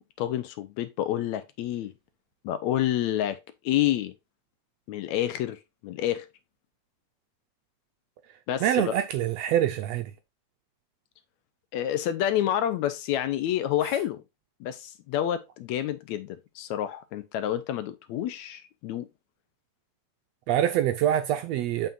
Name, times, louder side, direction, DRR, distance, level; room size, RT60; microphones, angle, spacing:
voice 1, 0.0-1.9 2.4-3.4 3.7-4.1 4.9-6.3 8.5-8.9 11.7-14.2 14.6-19.1, left 11 dB, 75° left, 1.9 m, -28 dB
voice 2, 8.6-10.1 20.5-21.9, right 11 dB, 75° right, 1.6 m, -25 dB
7.2 x 5.7 x 2.5 m
omnidirectional pair, 3.4 m